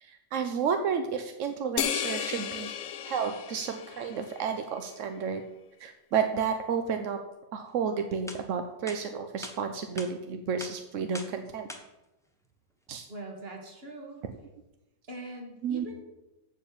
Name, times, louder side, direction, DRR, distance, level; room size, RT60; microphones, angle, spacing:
voice 1, 0.0-2.7 3.0-5.4 5.8-7.2 7.5-11.7 12.9-13.1 14.2-14.3 15.6-15.9, right 6 dB, 60° right, 7 dB, 0.8 m, -31 dB
sound 1, 1.8-4.5, left 9 dB, 60° left, 0.8 m, -34 dB
sound 2, 7.8-7.9 8.3-8.4 8.9-9.0 9.4-9.6 10.0-10.1 10.6-10.7 11.1-11.3 11.7-11.8, left 1 dB, ahead, 0.9 m, -41 dB
voice 2, 13.1-14.2 15.1-16.0, right 2 dB, 30° right, 1 dB, 2.4 m, -42 dB
14.5 x 5.0 x 7.0 m, 0.97 s
omnidirectional pair, 2.0 m